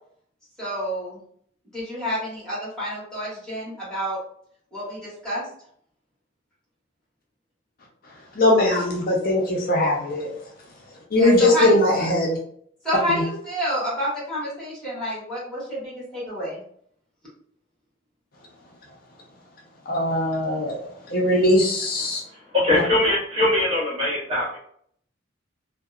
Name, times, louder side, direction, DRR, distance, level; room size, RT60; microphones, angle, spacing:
voice 1, 0.6-1.2 1.7-4.2 4.7-5.5 11.2-11.7 12.8-16.6, equal, 5° left, -8 dB, 1.3 m, -29 dB
voice 2, 8.0-10.5 10.8-12.4 13.1-13.2 19.9-22.2 22.7-22.8, left 1 dB, 45° left, -2 dB, 0.5 m, -21 dB
voice 3, 22.5-24.6, left 1 dB, 30° right, -6 dB, 0.9 m, -21 dB
2.7 x 2.0 x 2.3 m, 0.64 s
head